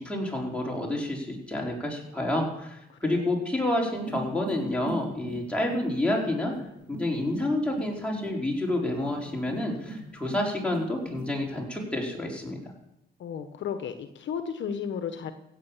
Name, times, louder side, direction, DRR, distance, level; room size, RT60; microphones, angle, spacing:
voice 1, 0.0-6.5 7.0-12.6, left 1 dB, 5° left, -2 dB, 4.6 m, -29 dB
voice 2, 2.9-3.4 13.2-15.3, left 7 dB, 70° left, 8 dB, 1.2 m, -34 dB
sound 1, 3.9-11.6, right 1 dB, 60° right, 3.4 m, -42 dB
16.0 x 7.8 x 7.4 m, 0.83 s
cardioid pair, 90°, 20 cm